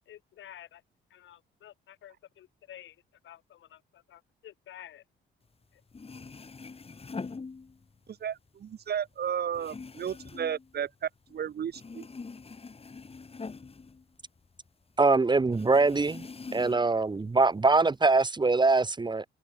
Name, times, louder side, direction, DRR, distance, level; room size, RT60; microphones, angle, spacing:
voice 1, 0.1-0.8 1.1-2.9 3.2-5.0, left 12 dB, 75° left, 4.4 m, -50 dB
sound 1, 5.6-5.7 5.9-8.1 8.5-11.4 11.7-14.7 15.0-15.1 15.5-17.0 17.4-18.2, left 4 dB, 30° left, 4.7 m, -44 dB
voice 2, 8.2-12.1, right 8 dB, 55° right, 1.9 m, -33 dB
voice 3, 15.0-16.3 16.5-19.2, right 3 dB, 20° right, 1.4 m, -23 dB
cardioid pair, 90°, 20 cm